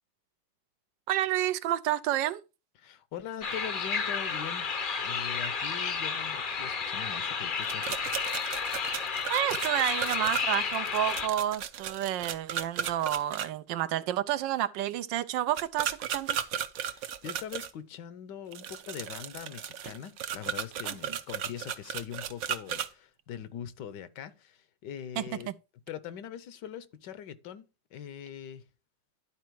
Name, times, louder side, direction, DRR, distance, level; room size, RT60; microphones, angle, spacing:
voice 1, 1.1-2.4 9.3-16.4 20.8-21.2 25.2-25.5, right 12 dB, 85° right, 1.3 m, -30 dB
voice 2, 2.8-4.7 5.0-8.3 16.9-25.5 25.9-28.6, left 9 dB, 75° left, 1.3 m, -42 dB
sound 1, 3.4-11.3, left 5 dB, 50° left, 0.6 m, -32 dB
sound 2, 7.6-13.5 15.5-17.7 18.5-22.9, right 9 dB, 65° right, 0.9 m, -35 dB
11.5 x 4.2 x 4.6 m
omnidirectional pair, 2.0 m